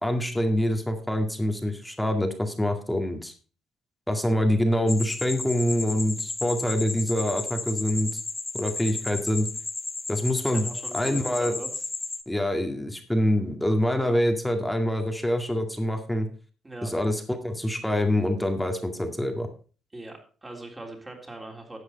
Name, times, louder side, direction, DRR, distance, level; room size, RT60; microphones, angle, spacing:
voice 1, 0.0-3.3 4.1-8.2 8.5-9.5 10.1-10.7 10.9-11.5 12.3-16.3 16.8-19.5, left 1 dB, 5° left, 5 dB, 2.0 m, -25 dB
sound 1, 4.9-12.2, left 3 dB, 25° left, 1.1 m, -34 dB
voice 2, 10.4-11.8 16.6-16.9 19.9-21.8, right 2 dB, 15° right, 2 dB, 3.4 m, -41 dB
12.5 x 8.1 x 4.1 m, 0.37 s
cardioid pair, 90°, 0 cm